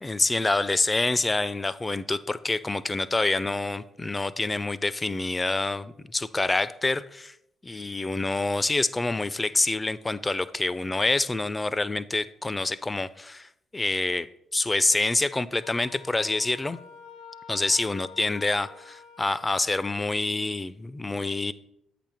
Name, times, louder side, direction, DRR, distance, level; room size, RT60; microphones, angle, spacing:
voice 1, 0.0-7.3 7.6-14.3 14.5-16.8 17.5-21.5, left 2 dB, 20° left, 17 dB, 0.4 m, -27 dB
Wind instrument woodwind instrument, 15.6-19.8, left 7 dB, 75° left, 0.6 m, -47 dB
8.5 x 5.8 x 3.5 m, 0.76 s
hypercardioid pair, 45°, 0 cm